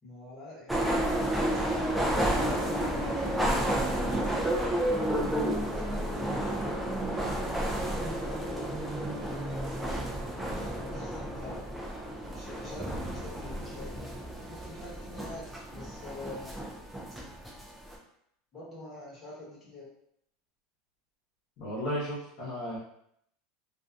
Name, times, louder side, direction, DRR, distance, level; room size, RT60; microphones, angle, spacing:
voice 1, 0.0-0.9 2.3-7.4 7.8-11.6 12.2-14.1 14.5-16.6 18.5-19.9, left 2 dB, 20° left, -8 dB, 1.1 m, -46 dB
sound 1, 0.7-18.0, right 1 dB, 5° right, 0.4 m, -31 dB
voice 2, 21.6-22.8, equal, 50° left, -10 dB, 0.9 m, -34 dB
2.5 x 2.2 x 2.4 m, 0.72 s
supercardioid pair, 155°, 0 cm